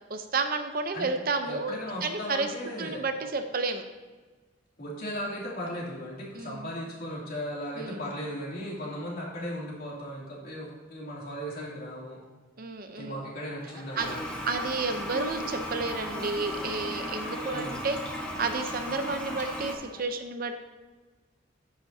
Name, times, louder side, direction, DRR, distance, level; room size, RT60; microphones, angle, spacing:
voice 1, 0.1-2.5 2.8-3.8 6.3-6.7 7.8-8.1 12.6-13.2 14.0-14.2 14.4-20.6, right 3 dB, 50° right, 7 dB, 0.7 m, -31 dB
voice 2, 1.4-3.0 4.8-12.2 13.0-14.4 17.5-17.8, equal, 55° left, -4 dB, 2.8 m, -37 dB
Speech, 13.6-20.1, left 1 dB, 30° left, 1.7 m, -48 dB
Toilet flush, 14.0-19.7, equal, 5° left, 1.2 m, -36 dB
10.0 x 8.8 x 2.8 m, 1.3 s
head